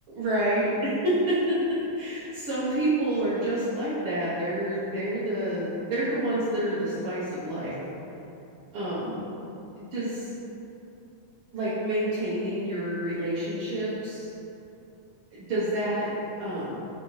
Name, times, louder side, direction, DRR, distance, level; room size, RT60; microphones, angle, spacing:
voice 1, 0.1-7.8 8.7-9.2 9.8-10.3 11.5-14.3 15.3-16.1 16.4-16.8, right 1 dB, 80° right, -11 dB, 1.1 m, -28 dB
5.1 x 2.6 x 3.0 m, 2.8 s
omnidirectional pair, 3.4 m